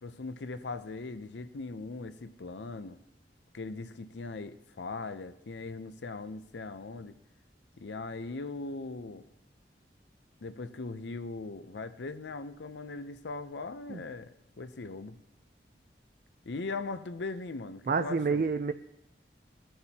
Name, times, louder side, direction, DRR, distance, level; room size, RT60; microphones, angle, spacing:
voice 1, 0.0-3.0 3.5-7.1 7.8-9.3 10.4-15.2 16.5-18.5, left 3 dB, 80° left, 12 dB, 0.6 m, -40 dB
voice 2, 17.9-18.7, right 5 dB, 50° right, 9 dB, 0.4 m, -28 dB
19.5 x 10.0 x 2.9 m, 0.81 s
head